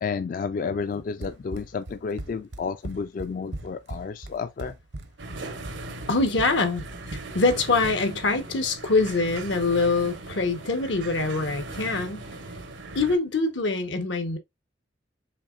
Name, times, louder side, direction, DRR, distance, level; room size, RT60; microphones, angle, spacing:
voice 1, 0.0-4.7, left 5 dB, 45° left, 0.3 m, -31 dB
Run, 1.2-8.2, right 1 dB, 70° right, 0.7 m, -39 dB
sound 1, 5.2-13.2, right 2 dB, 90° right, 1.0 m, -39 dB
voice 2, 6.1-6.8 7.3-12.2 12.9-14.4, left 3 dB, 85° left, 1.1 m, -24 dB
5.7 x 3.7 x 2.4 m
head